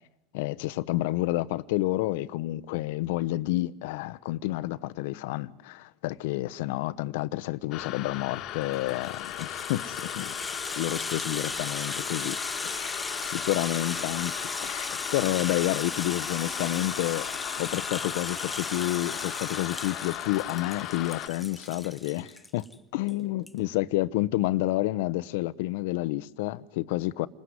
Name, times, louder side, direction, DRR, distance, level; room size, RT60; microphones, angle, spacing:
voice 1, 0.3-10.3 10.8-12.4 12.6-14.3 14.6-17.3 17.6-22.7 22.9-27.3, left 17 dB, 75° left, 0.9 m, -29 dB
sound 1, 7.7-21.3, left 14 dB, 55° left, 1.6 m, -37 dB
Rattle (instrument), 8.6-22.7 23.1-23.2 23.5-23.6, left 2 dB, 10° left, 1.5 m, -36 dB
28.5 x 20.5 x 9.7 m
hypercardioid pair, 90°, 0 cm